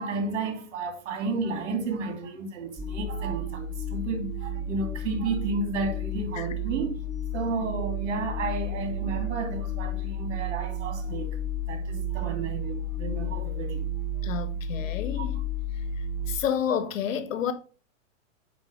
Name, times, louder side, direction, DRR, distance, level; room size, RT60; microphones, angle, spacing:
voice 1, 0.0-7.0 7.3-11.4 11.7-13.9 15.2-15.3, right 3 dB, 65° right, 2.7 m, -32 dB
sound 1, 2.8-16.4, equal, 10° right, 1.8 m, -32 dB
voice 2, 14.2-15.4 16.3-17.5, left 8 dB, 85° left, 1.4 m, -29 dB
9.2 x 3.7 x 5.1 m
hypercardioid pair, 140°, 38 cm